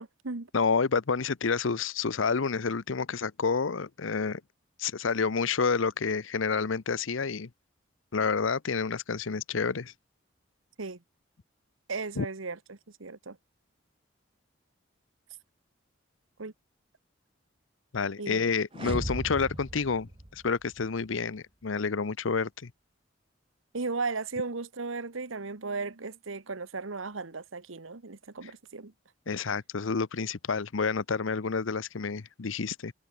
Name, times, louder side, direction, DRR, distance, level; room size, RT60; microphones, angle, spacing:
voice 1, 0.0-0.5 10.8-11.0 11.9-13.4 16.4-16.5 18.2-18.4 23.7-28.9 29.3-29.4, right 4 dB, 90° right, 1.3 m, -36 dB
voice 2, 0.5-4.4 4.8-7.5 8.1-9.9 12.2-12.3 17.9-22.7 29.3-32.9, left 5 dB, 80° left, 0.7 m, -29 dB
sound 1, 18.7-20.9, right 1 dB, 25° right, 1.2 m, -37 dB
head